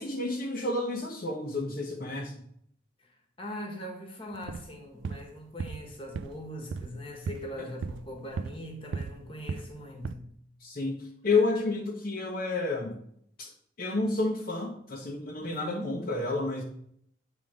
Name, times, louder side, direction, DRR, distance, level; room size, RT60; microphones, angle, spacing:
voice 1, 0.0-2.4 10.6-13.0 13.4-13.5 13.8-16.6, left 3 dB, 50° left, 0.9 m, -30 dB
voice 2, 3.4-10.4 15.4-16.1, equal, 30° left, 1.4 m, -41 dB
sound 1, 4.3-4.7 5.0-5.3 5.6-5.9 6.1-6.4 6.7-7.0 7.3-7.5 7.8-8.6 8.9-9.2 9.5-9.7 10.0-10.1, right 5 dB, 75° right, 0.3 m, -36 dB
8.5 x 3.7 x 6.3 m
head